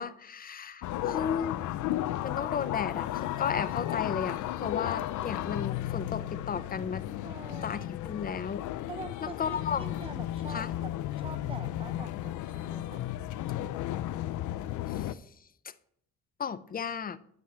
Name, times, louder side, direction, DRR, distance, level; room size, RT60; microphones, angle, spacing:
voice 1, 0.0-1.7 2.2-7.0 7.6-8.6 9.2-9.8 10.5-10.7 14.9-15.2 16.4-17.2, left 7 dB, 30° left, 0.5 m, -34 dB
sound 1, 0.8-15.1, left 13 dB, 80° left, 0.5 m, -34 dB
voice 2, 7.2-7.9 8.9-13.1, right 4 dB, 20° right, 0.5 m, -45 dB
8.8 x 7.2 x 3.2 m
cardioid pair, 90°, 30 cm